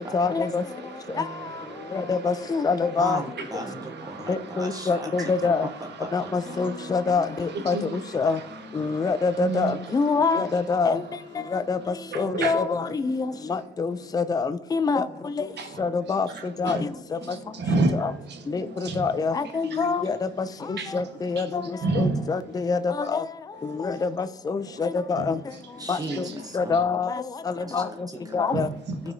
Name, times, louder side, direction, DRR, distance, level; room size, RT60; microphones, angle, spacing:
voice 1, 0.1-0.6 1.9-3.2 4.3-5.7 6.1-7.8 8.1-8.4 8.8-11.0 11.5-11.8 12.2-15.0 15.8-16.3 16.6-16.8 18.0-18.1 18.5-18.6 19.0-20.2 20.9-21.5 22.0-23.2 23.8-24.1 24.5-25.3 25.9-26.0 26.5-27.1 27.7-27.9 28.3-28.7, left 4 dB, 20° left, 0.4 m, -25 dB
voice 2, 0.7-2.7 3.7-5.4 6.5-7.0 7.5-8.0 8.3-8.4 8.8-9.1 9.4-9.8 12.1-12.7 15.6-15.8 16.3-16.8 17.2-19.1 19.7-19.8 20.8-21.1 21.4-21.5 21.8-22.3 25.2-25.3 26.1-26.2 28.5-29.0, right 3 dB, 60° right, 1.4 m, -31 dB
voice 3, 3.0-5.3 6.0-6.6 25.8-26.8 27.7-28.3, right 1 dB, 20° right, 1.0 m, -37 dB
12.5 x 4.7 x 2.7 m
cardioid pair, 90°, 20 cm